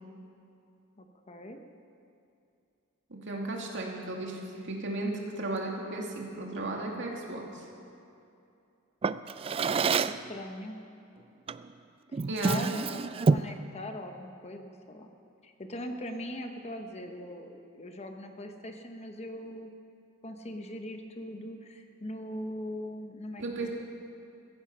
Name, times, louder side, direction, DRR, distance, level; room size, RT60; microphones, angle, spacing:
voice 1, 1.0-1.6 9.9-10.8 12.1-15.1 15.4-19.7 20.2-23.4, left 1 dB, 30° left, 5 dB, 1.0 m, -41 dB
voice 2, 3.1-7.6 12.3-12.6 23.4-23.7, right 2 dB, 60° right, 0 dB, 2.4 m, -35 dB
Drawer open or close, 9.0-10.3 11.5-11.7 12.1-13.6, right 4 dB, 25° right, 0.3 m, -28 dB
16.0 x 15.0 x 5.6 m, 2.6 s
head